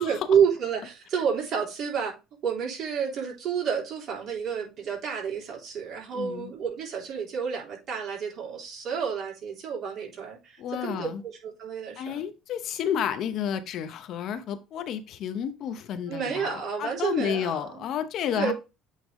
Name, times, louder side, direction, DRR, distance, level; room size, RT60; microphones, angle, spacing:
voice 1, 0.0-2.1 2.4-12.2 16.1-17.9 18.3-18.5, right 7 dB, 50° right, 3.4 m, -29 dB
voice 2, 6.1-6.5 10.6-11.2 12.0-18.5, left 9 dB, 60° left, 0.8 m, -31 dB
8.4 x 3.4 x 3.7 m
supercardioid pair, 90°, 0 cm